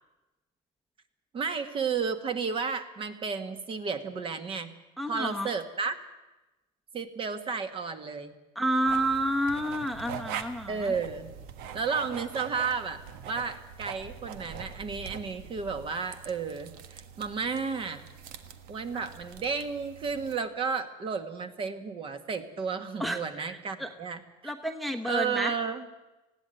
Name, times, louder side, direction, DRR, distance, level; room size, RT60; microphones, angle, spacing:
voice 1, 1.3-4.7 5.1-6.0 6.9-8.3 10.7-11.3 11.7-18.0 18.7-24.5 25.0-25.9, right 5 dB, 35° right, 8 dB, 1.8 m, -32 dB
voice 2, 5.0-5.5 8.5-10.9 18.9-19.0 23.0-23.9 24.4-25.5, right 1 dB, ahead, 5 dB, 1.1 m, -30 dB
sound 1, 8.9-20.4, right 7 dB, 75° right, 1.5 m, -43 dB
19.5 x 16.0 x 9.2 m, 1.0 s
cardioid pair, 145°, 15 cm